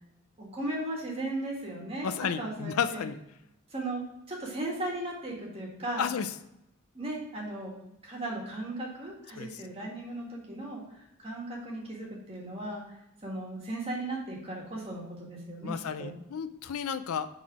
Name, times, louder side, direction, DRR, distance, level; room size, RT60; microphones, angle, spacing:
voice 1, 0.4-2.1 2.4-3.1 3.7-6.1 6.9-7.8 8.0-12.8 13.2-15.7 16.0-16.1, right 1 dB, 25° right, -3 dB, 1.7 m, -36 dB
voice 2, 2.0-3.2 6.0-6.3 9.4-9.5 15.6-17.3, left 7 dB, 85° left, 11 dB, 0.4 m, -32 dB
5.9 x 3.9 x 4.7 m, 0.83 s
head